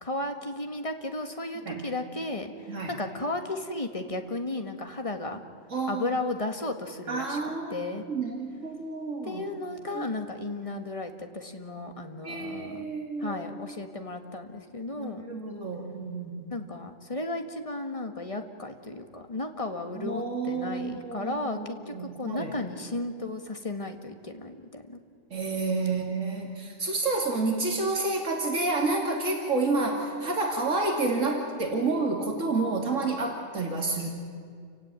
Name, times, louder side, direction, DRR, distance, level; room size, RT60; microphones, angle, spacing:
voice 1, 0.0-5.4 5.9-7.4 7.7-8.0 9.2-12.9 13.2-15.2 16.5-25.0, left 2 dB, 25° left, 6 dB, 1.7 m, -34 dB
voice 2, 5.7-6.1 7.1-7.8 8.1-9.5 9.9-10.0 12.2-13.4 14.9-16.5 19.9-22.5 25.3-34.1, right 3 dB, 80° right, 1 dB, 2.9 m, -29 dB
29.0 x 17.0 x 9.2 m, 2.1 s
omnidirectional pair, 1.3 m